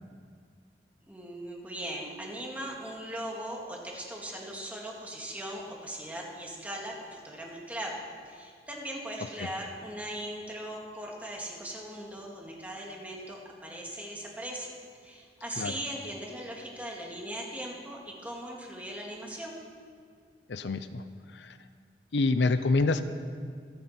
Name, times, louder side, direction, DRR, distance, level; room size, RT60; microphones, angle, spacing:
voice 1, 1.0-8.0 8.3-14.7 15.0-19.6, right 1 dB, 10° right, -2 dB, 2.2 m, -39 dB
voice 2, 20.5-21.0 21.3-21.6 22.1-23.0, left 3 dB, 85° left, 11 dB, 0.6 m, -27 dB
26.0 x 9.3 x 4.4 m, 2.1 s
head